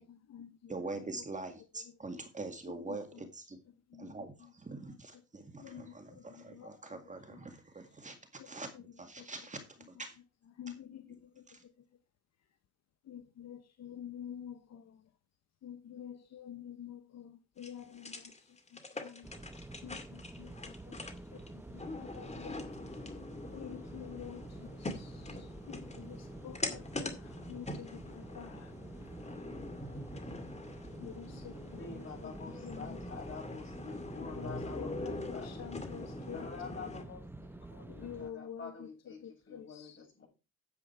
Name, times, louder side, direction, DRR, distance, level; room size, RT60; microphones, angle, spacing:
voice 1, 0.0-1.2 1.7-2.0 2.7-3.3 3.9-4.5 4.8-5.2 5.6-7.4 7.8-8.0 8.4-9.3 9.8-9.9 10.5-11.8 13.0-15.1 15.6-19.4 19.8-23.1 23.5-29.3 31.0-33.2 34.2-36.9 37.9-40.0, left 9 dB, 60° left, 0.9 m, -49 dB
voice 2, 0.7-3.6 4.0-8.2 8.5-9.6 9.9-10.2 10.7-10.8 11.5-11.6, right 3 dB, 25° right, 2.0 m, -44 dB
sound 1, 17.6-37.0, left 2 dB, 20° left, 2.2 m, -44 dB
sound 2, 19.2-38.3, right 2 dB, 5° right, 1.0 m, -48 dB
voice 3, 31.8-35.1 35.3-35.6 36.3-39.2 39.5-40.3, left 5 dB, 40° left, 7.7 m, -47 dB
10.0 x 7.7 x 4.5 m
cardioid pair, 90°, 30 cm